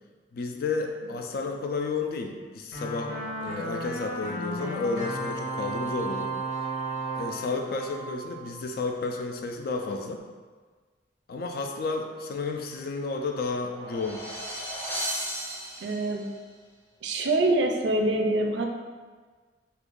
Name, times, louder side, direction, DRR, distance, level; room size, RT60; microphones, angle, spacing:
voice 1, 0.3-3.2 3.4-6.3 7.1-10.2 11.3-14.2, left 3 dB, 55° left, 4 dB, 0.3 m, -32 dB
sound 1, 2.7-8.8, right 2 dB, 85° left, 1.3 m, -34 dB
sound 2, 13.5-16.3, equal, 10° left, 0.7 m, -35 dB
voice 2, 15.8-16.3 17.0-18.6, right 2 dB, 75° right, 3 dB, 0.4 m, -25 dB
2.8 x 2.5 x 3.7 m, 1.4 s
head